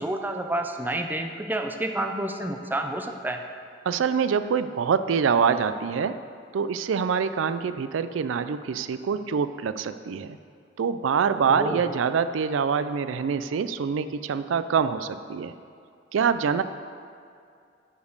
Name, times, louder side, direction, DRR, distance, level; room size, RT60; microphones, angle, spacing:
voice 1, 0.0-3.4 11.5-11.9, right 1 dB, 10° right, 5 dB, 0.5 m, -29 dB
voice 2, 3.9-6.1 6.5-10.4 10.8-15.5 16.1-16.6, right 6 dB, 90° right, 12 dB, 0.4 m, -25 dB
10.5 x 5.1 x 6.5 m, 2.4 s
head